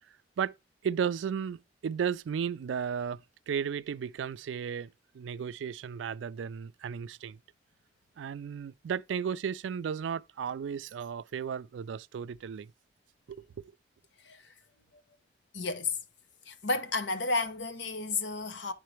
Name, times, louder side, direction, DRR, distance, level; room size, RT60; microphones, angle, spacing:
voice 1, 0.1-0.6 0.8-7.4 8.2-12.7 13.3-13.6, right 7 dB, 85° right, 0.3 m, -34 dB
voice 2, 15.5-16.0 16.4-18.7, left 3 dB, 75° left, 0.9 m, -32 dB
10.0 x 3.8 x 3.2 m
head